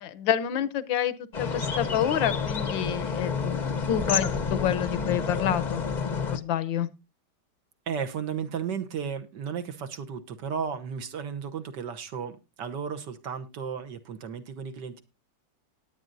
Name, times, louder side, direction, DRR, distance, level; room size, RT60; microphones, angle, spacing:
voice 1, 0.0-3.6 3.9-5.9 6.3-6.9, left 10 dB, 80° left, 16 dB, 1.6 m, -28 dB
sound 1, 1.3-6.4, left 5 dB, 35° left, 0.7 m, -29 dB
voice 2, 7.9-15.0, right 7 dB, 65° right, 7 dB, 1.6 m, -34 dB
18.5 x 9.1 x 2.6 m, 0.25 s
omnidirectional pair, 2.0 m